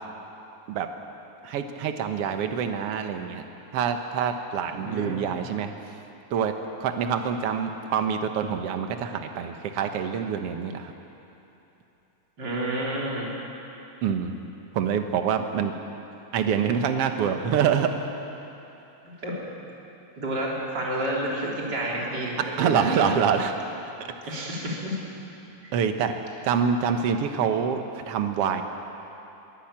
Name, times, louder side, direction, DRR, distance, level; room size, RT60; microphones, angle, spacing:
voice 1, 1.4-3.5 3.7-5.7 6.3-6.5 6.8-10.9 14.0-14.4 14.7-15.7 16.3-17.9 22.6-23.5 24.2-24.3 25.7-26.1 26.4-28.6, right 7 dB, 60° right, 6 dB, 2.0 m, -26 dB
voice 2, 4.7-5.1 12.4-13.3 19.1-19.3 20.2-23.1 24.3-25.0, right 1 dB, 35° right, -4 dB, 4.3 m, -30 dB
22.5 x 16.5 x 8.8 m, 3.0 s
omnidirectional pair, 3.4 m